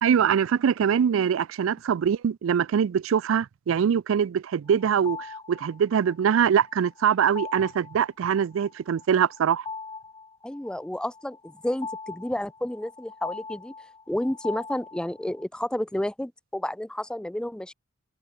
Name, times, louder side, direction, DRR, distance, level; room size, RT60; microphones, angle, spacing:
voice 1, 0.0-9.6, right 8 dB, 75° right, 0.4 m, -23 dB
sound 1, 4.7-15.4, left 4 dB, 20° left, 1.8 m, -41 dB
voice 2, 10.4-13.7 14.1-17.7, left 1 dB, 5° left, 0.3 m, -31 dB
head